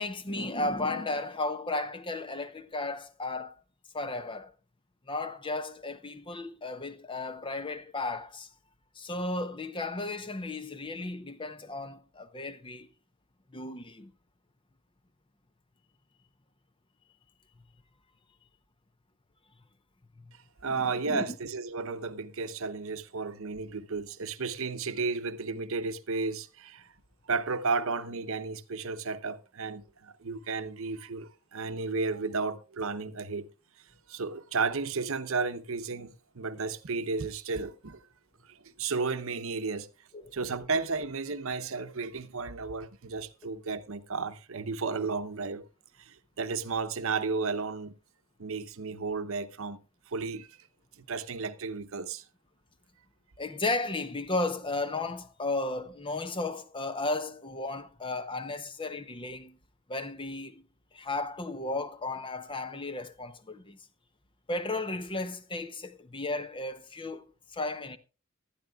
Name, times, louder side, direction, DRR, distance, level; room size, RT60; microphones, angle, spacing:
voice 1, 0.0-3.6 3.9-4.5 5.1-8.5 9.0-12.9 13.5-14.1 20.7-21.4 40.1-40.3 53.4-59.6 59.9-60.6 60.9-63.8 64.5-67.3 67.5-68.0, left 2 dB, 20° left, 0.7 m, -34 dB
voice 2, 20.6-26.9 27.2-33.5 34.1-38.0 38.5-39.9 40.3-45.6 46.0-47.9 48.4-49.8 50.1-50.6 51.0-52.2, right 4 dB, 60° right, 0.8 m, -33 dB
19.0 x 12.0 x 2.4 m
head